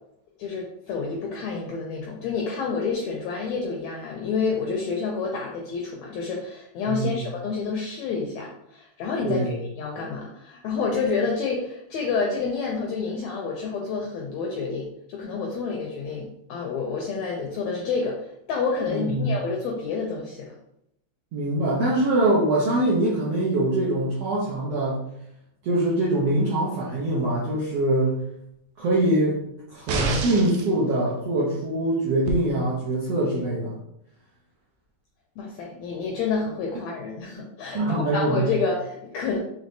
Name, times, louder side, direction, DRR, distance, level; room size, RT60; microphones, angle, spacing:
voice 1, 0.4-20.5 35.4-39.4, left 4 dB, 85° left, -1 dB, 1.6 m, -29 dB
voice 2, 6.9-7.2 9.2-9.6 18.9-19.4 21.3-25.0 25.6-28.2 28.8-29.4 29.7-33.7 37.7-38.5, right 1 dB, 75° right, -6 dB, 1.4 m, -23 dB
sound 1, 29.9-30.7 32.3-32.4, right 3 dB, 90° right, 1.5 m, -27 dB
6.2 x 3.2 x 2.7 m, 0.78 s
omnidirectional pair, 3.8 m